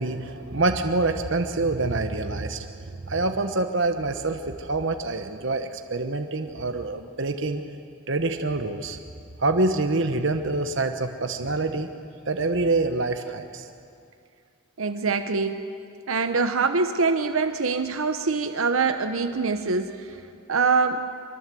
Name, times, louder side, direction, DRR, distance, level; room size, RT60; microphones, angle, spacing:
voice 1, 0.0-7.6 8.1-9.0 9.4-11.9 12.3-13.7, right 2 dB, 60° right, 6 dB, 1.1 m, -26 dB
voice 2, 14.8-15.6 16.1-20.1 20.5-21.0, right 4 dB, 80° right, 7 dB, 1.0 m, -24 dB
25.0 x 21.5 x 7.7 m, 2.5 s
head